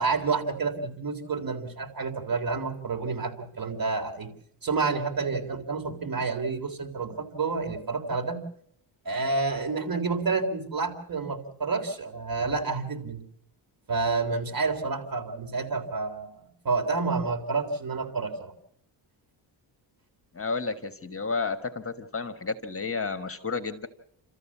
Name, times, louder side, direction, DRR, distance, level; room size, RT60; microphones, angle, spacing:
voice 1, 0.0-4.3 4.6-8.4 9.1-13.2 13.9-18.5, right 4 dB, 45° right, 4 dB, 3.5 m, -29 dB
voice 2, 20.3-23.9, left 4 dB, 30° left, 10 dB, 1.4 m, -31 dB
29.5 x 14.0 x 7.3 m, 0.70 s
cardioid pair, 100°, 48 cm